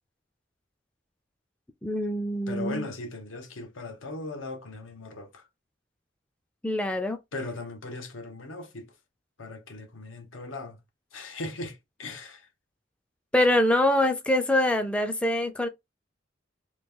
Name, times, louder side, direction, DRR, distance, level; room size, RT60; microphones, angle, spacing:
voice 1, 1.8-2.9 6.6-7.2 13.3-15.7, left 1 dB, 5° left, 0.3 m, -24 dB
voice 2, 2.5-5.5 7.3-8.9 9.4-10.8 11.1-12.5, left 2 dB, 90° left, 0.9 m, -38 dB
3.0 x 2.3 x 3.5 m
head